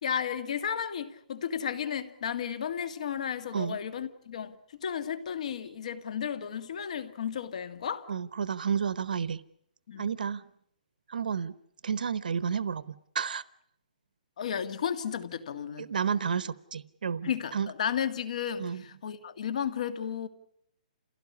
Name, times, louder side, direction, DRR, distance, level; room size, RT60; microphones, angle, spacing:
voice 1, 0.0-8.1 9.9-10.1 14.4-15.9 17.2-20.3, left 8 dB, 55° left, 2.0 m, -33 dB
voice 2, 8.1-9.4 10.0-10.4 11.1-11.5 11.8-13.4 15.8-17.7 18.6-18.8, right 7 dB, 80° right, 0.9 m, -31 dB
28.0 x 17.0 x 9.7 m
hypercardioid pair, 165°, 5 cm